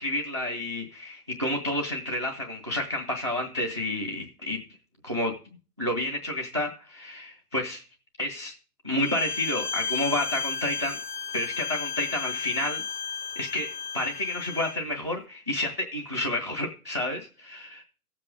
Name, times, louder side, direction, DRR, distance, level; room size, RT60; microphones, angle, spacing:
voice 1, 0.0-4.6 5.0-5.3 5.8-7.8 8.2-8.5 8.8-11.0 11.3-12.8 13.4-13.7 13.9-17.7, left 1 dB, 20° right, 4 dB, 0.4 m, -30 dB
Bowed string instrument, 9.0-14.8, left 6 dB, 30° left, 0.5 m, -34 dB
15.0 x 7.5 x 3.7 m, 0.36 s
hypercardioid pair, 165°, 46 cm